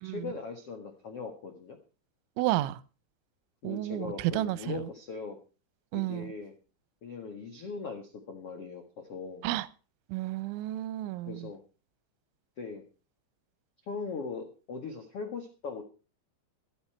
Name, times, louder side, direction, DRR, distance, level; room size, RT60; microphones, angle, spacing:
voice 1, 0.0-1.8 3.6-5.4 5.9-6.5 7.0-9.4 11.2-11.6 12.6-12.8 13.8-15.8, left 4 dB, 80° left, 1.3 m, -40 dB
voice 2, 2.4-2.8 3.6-4.1 4.3-4.8 5.9-6.3 9.4-9.7 10.1-11.3, right 16 dB, 80° right, 3.0 m, -31 dB
14.0 x 13.5 x 4.4 m
omnidirectional pair, 5.8 m